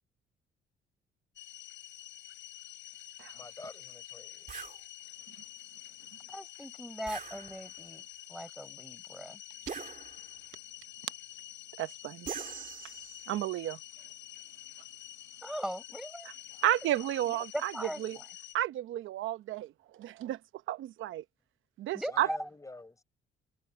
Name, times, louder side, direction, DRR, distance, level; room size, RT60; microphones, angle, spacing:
sound 1, 1.4-18.6, left 13 dB, 65° left, 6.7 m, -48 dB
voice 1, 3.3-4.6 22.1-23.0, left 2 dB, 15° left, 4.2 m, -48 dB
sound 2, 4.5-4.8 7.1-7.9 9.7-10.5 12.3-13.4, right 7 dB, 40° right, 2.7 m, -43 dB
voice 2, 6.3-8.0 8.3-9.4 15.4-16.3 17.3-18.2 21.9-22.4, equal, ahead, 7.2 m, -39 dB
voice 3, 11.8-12.3 13.3-13.8 16.6-18.2 18.5-20.4 20.7-21.2 21.8-22.3, right 13 dB, 80° right, 0.9 m, -32 dB
cardioid pair, 90°, 20 cm